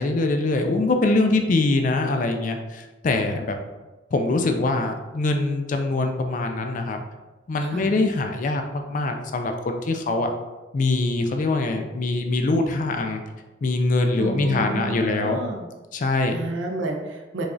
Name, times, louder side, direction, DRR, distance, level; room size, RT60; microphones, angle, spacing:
voice 1, 0.0-3.6 4.1-7.0 7.5-10.3 10.7-13.2 13.6-15.4 15.9-16.4, left 2 dB, 40° left, 5 dB, 0.3 m, -23 dB
voice 2, 7.6-7.9 14.2-15.7 16.3-17.5, right 2 dB, 75° right, 3 dB, 0.5 m, -31 dB
4.8 x 2.4 x 2.6 m, 1.1 s
head